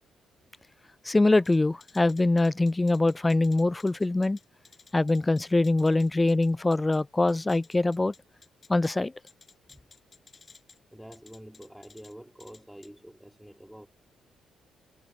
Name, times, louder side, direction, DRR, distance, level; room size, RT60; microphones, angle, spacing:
voice 1, 1.0-4.4 4.9-8.1 8.7-9.1, left 2 dB, 15° left, 0.3 m, -23 dB
sound 1, 1.5-7.0 7.3-9.0 9.3-10.8 11.1-12.1 12.4-12.9, left 4 dB, 35° left, 6.6 m, -55 dB
voice 2, 10.9-13.9, equal, 5° right, 3.1 m, -47 dB
cardioid pair, 90°, 0 cm